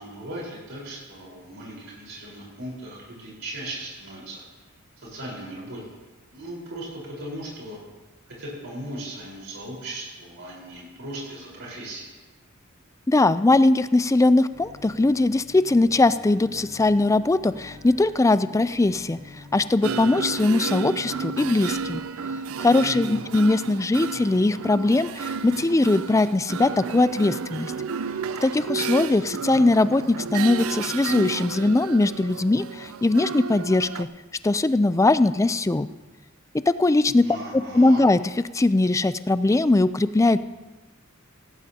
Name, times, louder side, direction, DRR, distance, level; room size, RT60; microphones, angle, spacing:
voice 1, 0.0-4.4 5.0-5.8 6.3-7.8 8.3-12.1 22.8-23.2 37.2-38.0, right 1 dB, 65° right, -4 dB, 4.5 m, -37 dB
voice 2, 13.1-19.2 19.5-22.0 22.6-27.7 28.4-34.1 34.4-35.9 36.8-38.2 38.5-40.4, left 2 dB, 15° left, 14 dB, 0.4 m, -20 dB
Bowed string instrument, 14.5-22.0, left 2 dB, 45° right, 3.3 m, -47 dB
sound 1, 19.8-34.0, right 6 dB, 90° right, 0.5 m, -32 dB
17.0 x 16.5 x 2.9 m, 1.2 s
head